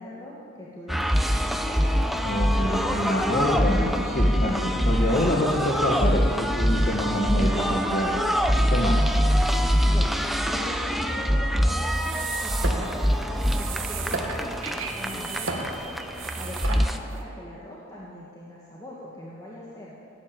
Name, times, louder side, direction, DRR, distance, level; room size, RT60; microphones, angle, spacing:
voice 1, 0.0-1.4 1.6-1.8 9.9-10.2 10.5-19.9, left 1 dB, 15° left, -6 dB, 1.8 m, -41 dB
sound 1, 0.9-17.0, equal, ahead, 0.5 m, -24 dB
voice 2, 2.2-8.4 8.7-9.1, left 1 dB, 35° left, -3 dB, 1.5 m, -26 dB
sound 2, 11.8-17.2, right 4 dB, 60° right, 1.7 m, -34 dB
17.5 x 9.1 x 8.8 m, 2.5 s
head